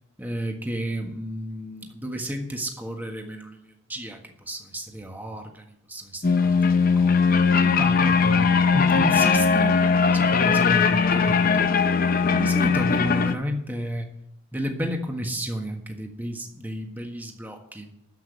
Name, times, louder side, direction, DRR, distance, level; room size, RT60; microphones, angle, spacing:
voice 1, 0.2-7.1 7.6-9.8 10.1-11.7 12.3-14.1 14.5-17.9, equal, 10° right, 3 dB, 1.5 m, -32 dB
sound 1, 6.2-13.3, left 5 dB, 45° left, 0.7 m, -20 dB
13.0 x 5.9 x 8.2 m, 0.74 s
head